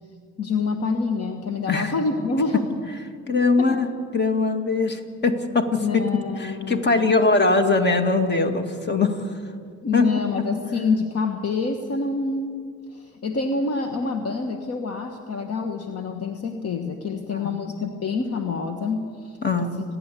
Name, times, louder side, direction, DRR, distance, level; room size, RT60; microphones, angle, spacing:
voice 1, 0.4-2.6 3.6-3.7 5.8-7.1 9.8-19.7, left 4 dB, 55° left, 5 dB, 1.5 m, -27 dB
voice 2, 3.3-6.0 6.4-9.1 9.9-10.2 17.4-17.6 19.4-19.7, left 3 dB, 35° left, 7 dB, 2.1 m, -21 dB
29.5 x 11.0 x 8.5 m, 2.2 s
cardioid pair, 90°, 30 cm